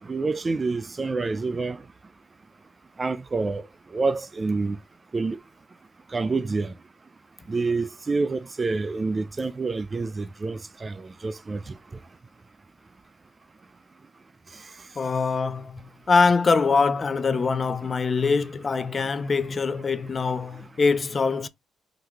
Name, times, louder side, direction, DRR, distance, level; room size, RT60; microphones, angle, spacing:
voice 1, 0.1-1.8 3.0-3.7 3.9-4.8 5.1-5.4 6.1-6.7 7.5-11.7, right 3 dB, 30° right, 0.4 m, -27 dB
voice 2, 15.0-21.5, left 4 dB, 35° left, 0.5 m, -23 dB
3.9 x 2.9 x 3.4 m
cardioid pair, 90°, 0 cm